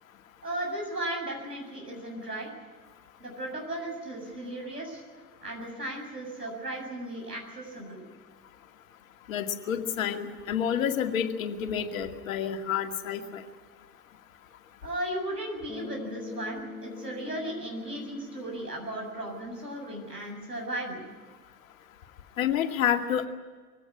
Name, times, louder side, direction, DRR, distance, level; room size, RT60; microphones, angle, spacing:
voice 1, 0.4-2.5 3.2-5.0 5.4-8.0 14.8-21.0, right 1 dB, 85° right, 0 dB, 7.6 m, -36 dB
voice 2, 9.3-13.4 22.4-23.3, left 8 dB, 55° left, 6 dB, 2.2 m, -29 dB
Bass guitar, 15.7-19.9, left 3 dB, 15° left, 7.5 m, -44 dB
23.0 x 17.0 x 9.9 m, 1.4 s
figure-of-eight pair, 90°, 47 cm